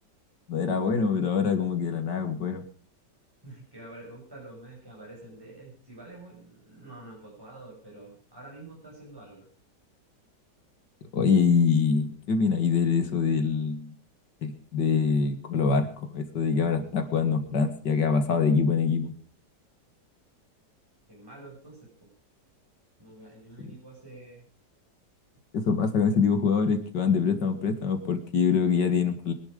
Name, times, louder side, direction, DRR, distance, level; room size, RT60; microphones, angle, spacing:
voice 1, 0.5-2.6 11.1-13.9 14.4-19.1 23.6-23.7 25.5-29.3, left 5 dB, 80° left, 9 dB, 2.4 m, -24 dB
voice 2, 3.4-9.5 21.1-22.1 23.0-24.4, right 2 dB, 10° right, -4 dB, 6.6 m, -47 dB
23.0 x 11.0 x 5.0 m, 0.42 s
omnidirectional pair, 1.9 m